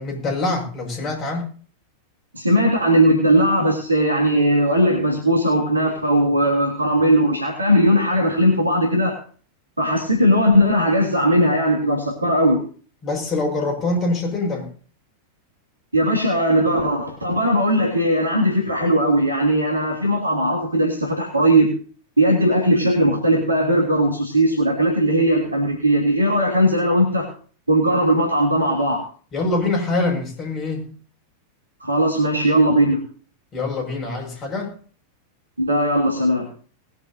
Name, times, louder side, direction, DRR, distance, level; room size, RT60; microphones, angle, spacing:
voice 1, 0.0-1.5 13.0-14.7 29.3-30.9 33.5-34.7, left 2 dB, 25° left, 6.5 m, -24 dB
voice 2, 2.3-9.2 9.8-12.6 15.9-21.7 22.2-27.3 27.7-29.0 31.8-33.0 35.6-36.5, equal, 80° right, 3.3 m, -18 dB
20.5 x 11.0 x 2.9 m
figure-of-eight pair, 90°, 0 cm